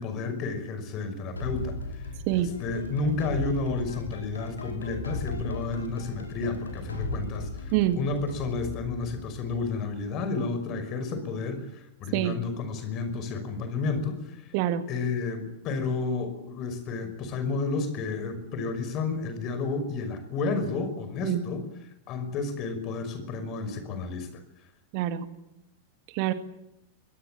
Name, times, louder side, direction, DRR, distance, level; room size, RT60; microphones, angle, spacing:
voice 1, 0.0-2.0 2.3-14.4 14.9-21.7 22.1-24.4, left 3 dB, 35° left, 9 dB, 5.6 m, -31 dB
sound 1, 1.4-10.2, left 2 dB, 75° left, 4.5 m, -37 dB
voice 2, 24.9-25.3 26.1-26.3, right 12 dB, 45° right, 10 dB, 1.8 m, -25 dB
23.0 x 18.0 x 8.9 m, 0.86 s
figure-of-eight pair, 90°, 0 cm